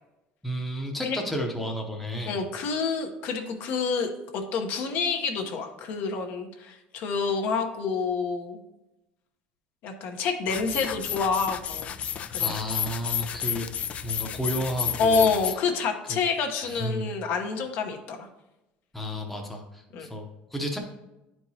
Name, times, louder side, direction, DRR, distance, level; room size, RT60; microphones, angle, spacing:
voice 1, 0.4-2.4 12.4-13.7 14.0-15.3 16.6-17.1 18.9-20.8, equal, 5° left, 1 dB, 0.8 m, -32 dB
voice 2, 2.3-8.6 9.8-12.5 15.0-18.3 19.9-20.1, left 5 dB, 60° left, 4 dB, 0.9 m, -28 dB
sound 1, 10.5-15.5, left 9 dB, 35° left, 0.3 m, -31 dB
10.0 x 4.6 x 2.8 m, 0.96 s
cardioid pair, 150°, 4 cm